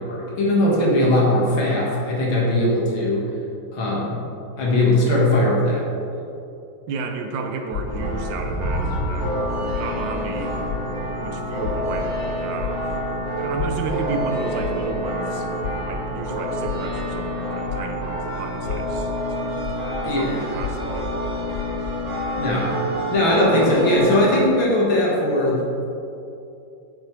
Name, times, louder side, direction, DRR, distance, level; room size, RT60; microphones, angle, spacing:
voice 1, 0.0-3.3 3.7-4.2 4.6-5.8 20.0-20.4 22.4-22.7 23.1-25.6, left 1 dB, 85° left, -4 dB, 2.7 m, -19 dB
voice 2, 6.9-10.6 11.2-13.0 13.4-15.5 15.9-19.6 20.0-21.2, right 4 dB, 75° right, 4 dB, 1.5 m, -32 dB
sound 1, 7.7-10.4 10.6-18.2 18.6-22.1, left 5 dB, 65° left, 1.1 m, -33 dB
sound 2, 7.8-24.4, equal, 20° left, 2.3 m, -27 dB
10.5 x 7.5 x 3.4 m, 2.7 s
omnidirectional pair, 2.1 m